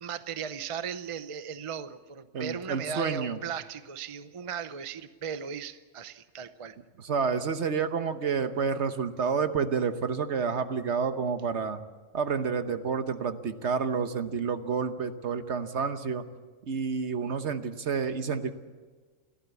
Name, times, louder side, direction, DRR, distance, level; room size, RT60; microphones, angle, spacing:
voice 1, 0.0-6.8, right 7 dB, 35° right, 12 dB, 0.6 m, -37 dB
voice 2, 2.3-3.4 7.0-11.8 12.1-16.2 16.7-18.5, right 5 dB, 65° right, 9 dB, 1.3 m, -29 dB
29.5 x 12.0 x 8.2 m, 1.5 s
omnidirectional pair, 1.3 m